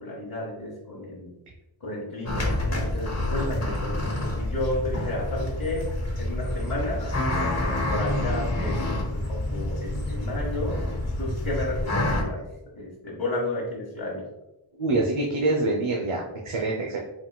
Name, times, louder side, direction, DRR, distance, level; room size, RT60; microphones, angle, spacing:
voice 1, 0.0-1.3 1.8-5.9 6.2-10.8 11.2-12.4 12.7-14.2, left 1 dB, 70° left, -6 dB, 1.3 m, -32 dB
sound 1, 2.3-12.2, left 1 dB, 30° left, 1.0 m, -28 dB
voice 2, 14.8-17.0, right 2 dB, 80° right, -1 dB, 0.8 m, -25 dB
4.9 x 3.7 x 2.3 m, 0.93 s
wide cardioid pair, 60°, 50 cm